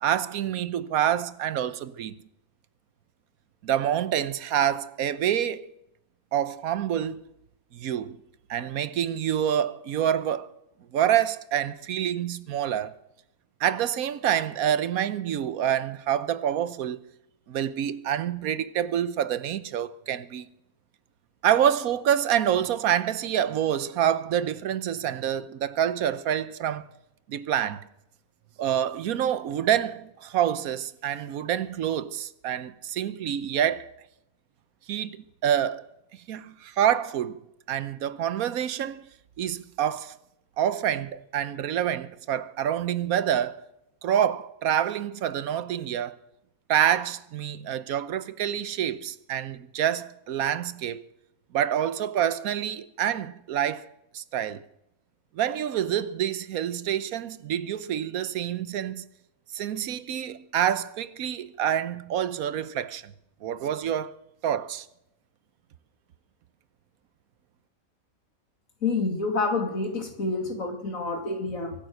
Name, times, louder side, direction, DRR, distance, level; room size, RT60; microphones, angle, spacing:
voice 1, 0.0-2.1 3.6-5.7 6.3-7.2 7.7-8.2 8.5-10.5 10.9-12.9 13.6-17.0 17.5-20.5 21.4-26.9 27.3-27.8 28.6-33.9 34.9-35.2 35.4-35.9 36.3-37.4 37.7-39.0 39.4-40.1 40.6-43.6 44.0-46.1 46.7-51.1 51.5-53.9 54.1-54.6 55.3-59.0 59.5-63.1 63.4-64.1 64.4-64.9, right 10 dB, 80° right, 1.3 m, -27 dB
voice 2, 68.8-71.7, left 3 dB, 70° left, 3.2 m, -28 dB
23.5 x 9.3 x 6.5 m
omnidirectional pair, 1.5 m